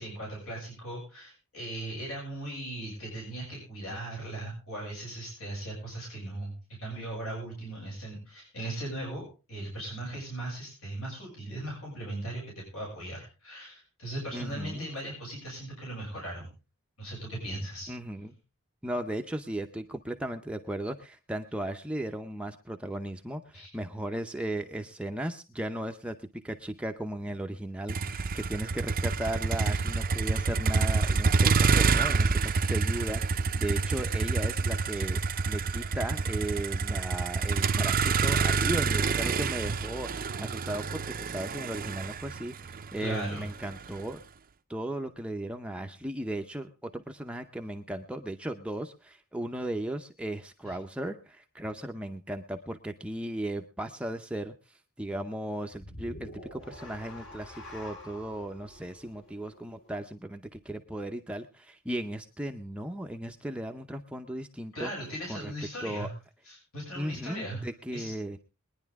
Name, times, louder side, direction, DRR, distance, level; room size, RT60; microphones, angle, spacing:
voice 1, 0.0-16.5 17.0-17.9 23.5-23.7 43.0-43.4 64.7-66.1 66.4-67.6 67.9-68.1, right 1 dB, 75° left, -2 dB, 6.8 m, -38 dB
voice 2, 14.3-14.9 17.9-18.4 18.8-26.2 26.4-35.2 35.5-44.2 44.7-64.9 65.3-65.5 65.8-66.1 67.0-68.4, right 1 dB, 5° right, 4 dB, 0.7 m, -36 dB
Motor vehicle (road), 27.9-44.0, right 4 dB, 40° right, 0.6 m, -27 dB
sound 1, 55.7-60.1, left 1 dB, 60° left, 2.8 m, -47 dB
22.0 x 10.0 x 3.5 m, 0.31 s
head